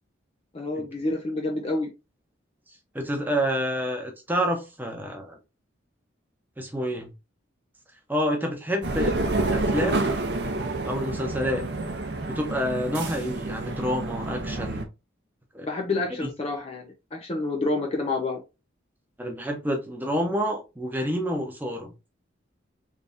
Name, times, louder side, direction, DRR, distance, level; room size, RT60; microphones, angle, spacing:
voice 1, 0.5-1.9 9.0-9.2 15.6-18.4, left 2 dB, 30° left, 0.4 m, -28 dB
voice 2, 2.9-5.4 6.6-7.1 8.1-9.2 9.5-10.1 10.8-11.6 12.3-14.9 15.5-15.7 16.2-16.3 19.2-21.9, equal, 10° right, 0.7 m, -28 dB
sound 1, 8.8-14.8, right 2 dB, 55° right, 0.6 m, -28 dB
3.5 x 3.2 x 2.6 m
head